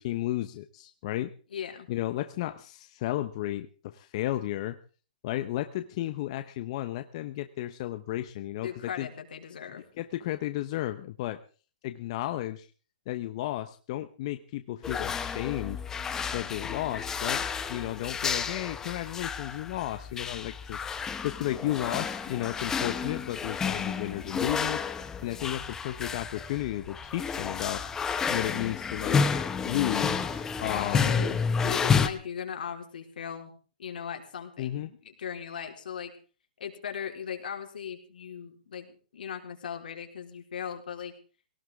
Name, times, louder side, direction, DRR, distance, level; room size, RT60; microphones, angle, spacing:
voice 1, 0.0-1.3 1.9-4.8 5.2-8.7 9.0-9.1 10.0-11.4 11.8-12.7 13.1-15.8 16.3-20.8 21.2-24.8 25.2-27.8 28.3-29.2 29.6-31.1 34.6-34.9, left 14 dB, 40° left, 9 dB, 1.0 m, -33 dB
voice 2, 1.5-1.9 7.9-8.0 8.6-9.8 30.7-33.5 33.8-36.1 36.6-41.1, left 8 dB, 80° left, 3 dB, 4.2 m, -38 dB
sound 1, 14.8-32.1, left 6 dB, 10° left, 1.2 m, -30 dB
18.5 x 18.0 x 3.7 m, 0.37 s
hypercardioid pair, 160°, 5 cm